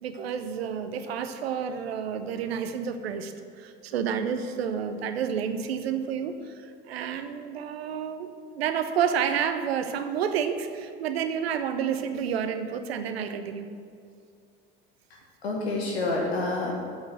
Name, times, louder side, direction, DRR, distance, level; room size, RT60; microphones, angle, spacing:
voice 1, 0.0-13.7, right 7 dB, 80° right, 9 dB, 0.7 m, -30 dB
voice 2, 15.1-16.7, left 2 dB, 85° left, -1 dB, 1.2 m, -29 dB
8.0 x 5.9 x 7.8 m, 2.3 s
hypercardioid pair, 65°, 30 cm